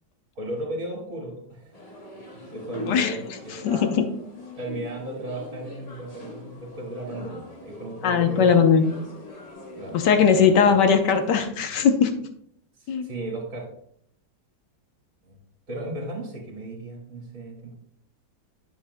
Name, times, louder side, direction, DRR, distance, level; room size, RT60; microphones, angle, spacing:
voice 1, 0.3-1.8 2.3-3.9 4.6-8.5 9.8-10.8 12.8-13.7 15.2-15.4 15.7-17.7, right 1 dB, 45° right, -3 dB, 2.6 m, -35 dB
sound 1, 1.7-11.5, left 1 dB, 25° left, 1.0 m, -42 dB
voice 2, 2.9-3.2 3.5-4.0 8.0-8.9 9.9-12.1 12.9-13.1, left 6 dB, 70° left, 7 dB, 1.4 m, -19 dB
10.0 x 7.4 x 2.2 m, 0.68 s
omnidirectional pair, 2.0 m